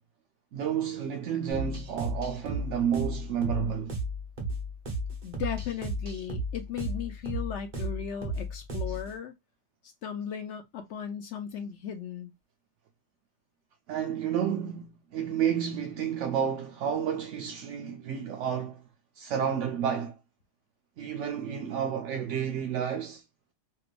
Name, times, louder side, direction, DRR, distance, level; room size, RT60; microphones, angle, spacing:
voice 1, 0.5-4.0 8.9-9.0 13.9-18.8 19.2-20.1 21.0-23.2, right 8 dB, 65° right, 0.7 m, -31 dB
sound 1, 1.5-9.1, right 1 dB, 35° right, 0.9 m, -34 dB
voice 2, 5.2-9.3 9.8-12.3, left 8 dB, 60° left, 0.7 m, -36 dB
3.3 x 2.9 x 2.4 m
omnidirectional pair, 1.7 m